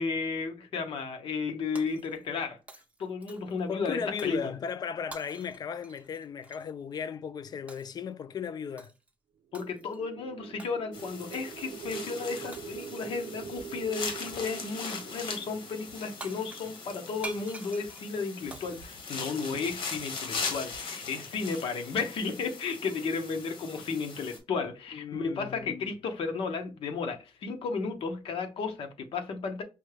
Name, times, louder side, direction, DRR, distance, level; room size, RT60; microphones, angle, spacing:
voice 1, 0.0-2.6 3.0-4.5 9.5-29.6, left 4 dB, 90° left, 0.9 m, -33 dB
Shatter, 1.8-2.4 2.7-3.6 4.2-4.4 5.1-6.7 7.7-8.0 8.8-9.1 9.5-10.0 10.6-10.8 11.3-11.6 12.5-13.1 14.0-14.4 15.9-16.0 16.2-19.8, right 3 dB, 15° right, 0.5 m, -47 dB
voice 2, 3.7-8.9 24.9-25.9, left 7 dB, 45° left, 0.4 m, -36 dB
sound 1, 9.5-17.6, right 8 dB, 75° right, 0.4 m, -44 dB
sound 2, 10.9-24.4, left 4 dB, 75° left, 1.3 m, -40 dB
5.2 x 2.2 x 3.2 m
wide cardioid pair, 165°, 9 cm